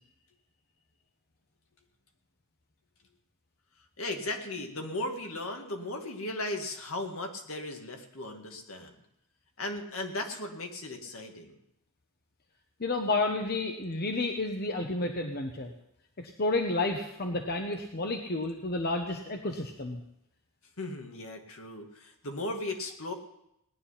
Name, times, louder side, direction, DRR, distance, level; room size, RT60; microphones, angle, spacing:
voice 1, 4.0-9.0 9.6-11.6 20.8-23.1, left 2 dB, 70° left, 3 dB, 2.0 m, -36 dB
voice 2, 12.8-15.7 16.2-20.0, left 2 dB, 45° left, 4 dB, 1.0 m, -31 dB
18.5 x 10.0 x 5.8 m, 0.81 s
head